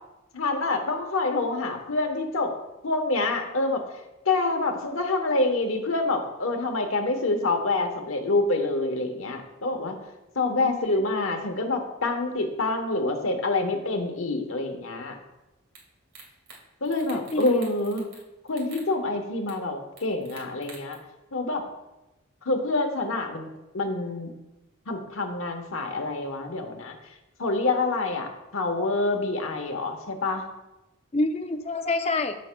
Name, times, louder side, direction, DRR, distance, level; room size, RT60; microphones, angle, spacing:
voice 1, 0.3-2.5 2.8-3.8 4.2-10.0 10.3-15.2 16.8-18.1 18.5-21.0 21.3-21.6 22.4-24.3 24.9-27.0 27.4-30.4, left 2 dB, 75° left, 4 dB, 1.1 m, -27 dB
voice 2, 10.5-11.0 17.1-17.7 31.1-32.4, left 2 dB, 30° left, 8 dB, 0.5 m, -28 dB
sound 1, 15.7-15.8 16.1-16.6 16.8-18.2 18.5-18.9 19.5-19.6 20.0-20.9, right 4 dB, 70° right, 2.0 m, -47 dB
13.5 x 6.3 x 2.2 m, 1.0 s
head